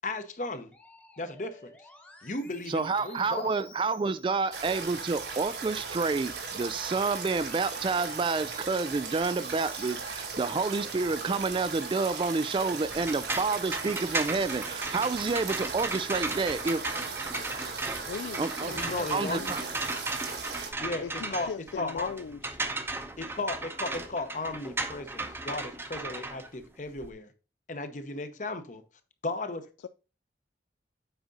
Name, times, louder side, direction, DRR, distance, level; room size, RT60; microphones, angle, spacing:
voice 1, 0.0-0.7 1.2-1.7 2.2-3.5 18.7-19.5 20.8-21.0 21.3-21.5 21.8-22.1 23.2-27.3 27.7-28.8 29.2-29.7, left 2 dB, 45° left, 0.9 m, -35 dB
Musical instrument, 0.7-11.1 11.6-13.2, left 1 dB, 10° left, 1.1 m, -55 dB
voice 2, 2.7-16.8 18.4-18.7 19.1-19.6, right 4 dB, 30° right, 0.3 m, -29 dB
sound 1, 4.5-20.7, right 5 dB, 75° right, 1.7 m, -38 dB
sound 2, 12.9-27.1, right 2 dB, 15° right, 0.7 m, -36 dB
voice 3, 18.1-19.6 21.0-22.6 29.8-29.9, left 6 dB, 85° left, 0.3 m, -39 dB
8.0 x 5.1 x 3.9 m
head